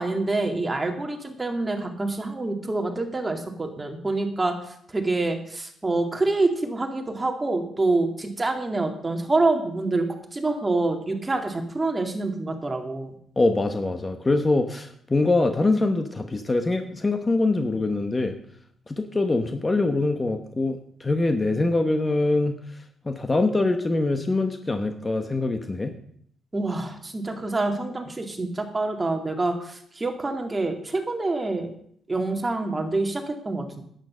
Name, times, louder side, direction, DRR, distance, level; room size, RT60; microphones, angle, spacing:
voice 1, 0.0-10.1 10.3-13.1 26.5-31.7 32.1-33.8, right 2 dB, 20° right, 4 dB, 2.3 m, -26 dB
voice 2, 13.4-18.4 18.9-22.6 23.0-25.9, left 2 dB, 20° left, 7 dB, 1.1 m, -24 dB
10.5 x 9.3 x 6.3 m, 0.66 s
cardioid pair, 90°, 0 cm